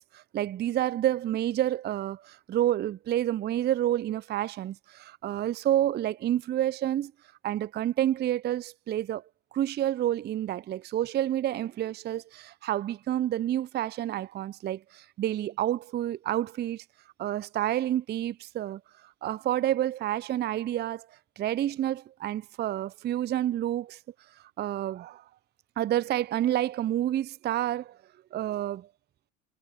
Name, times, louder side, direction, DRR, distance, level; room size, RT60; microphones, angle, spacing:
voice 1, 0.0-7.1 7.4-9.2 9.5-16.8 17.2-18.8 19.2-21.1 21.4-24.0 24.6-25.2 25.8-28.0 28.3-28.9, right 12 dB, 25° right, 0.6 m, -29 dB
figure-of-eight pair, 75°, 40 cm